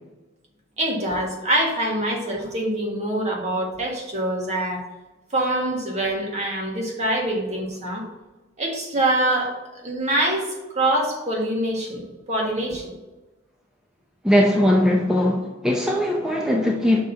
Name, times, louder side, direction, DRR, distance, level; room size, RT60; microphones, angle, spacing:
voice 1, 0.8-4.8 5.3-8.0 8.6-9.6 9.8-12.9, right 1 dB, 35° right, 1.7 m, -24 dB
voice 2, 14.2-17.0, left 1 dB, 5° right, 0.6 m, -20 dB
6.2 x 4.1 x 5.8 m
head